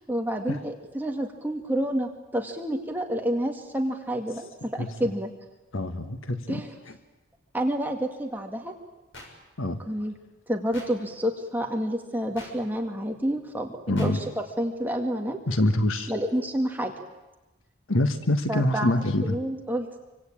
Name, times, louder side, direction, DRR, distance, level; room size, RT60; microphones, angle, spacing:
voice 1, 0.1-5.3 6.5-6.7 7.5-8.7 9.9-10.1 10.5-15.4 16.1-16.9 18.5-18.9 19.2-20.0, equal, 10° right, 2 dB, 2.0 m, -29 dB
voice 2, 5.7-6.9 9.6-9.8 13.9-14.2 15.5-16.1 17.9-19.4, left 1 dB, 80° left, 8 dB, 1.5 m, -25 dB
sound 1, 9.1-9.3 10.7-10.9 12.4-12.5 14.0-14.1, left 2 dB, 65° left, 6.2 m, -42 dB
26.5 x 24.5 x 8.8 m, 1.1 s
head